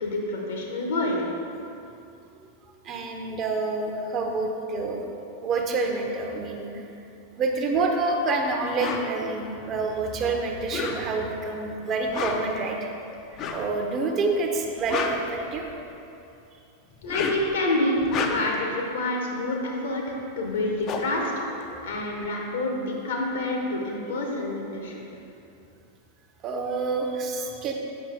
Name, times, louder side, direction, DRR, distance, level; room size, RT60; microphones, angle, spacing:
voice 1, 0.0-1.2 17.0-25.0, left 1 dB, 65° left, -1 dB, 1.2 m, -28 dB
voice 2, 2.8-5.0 5.4-6.7 7.4-12.8 13.5-15.6 26.4-27.7, right 3 dB, 30° right, 2 dB, 0.7 m, -27 dB
sound 1, 8.8-9.1 10.6-11.3 12.0-12.6 13.3-13.7 14.6-15.9 16.9-17.5 18.0-18.6 20.2-20.3 20.5-22.2, left 4 dB, 35° left, 0.5 m, -31 dB
7.0 x 5.9 x 3.4 m, 2.7 s
figure-of-eight pair, 90°, 0 cm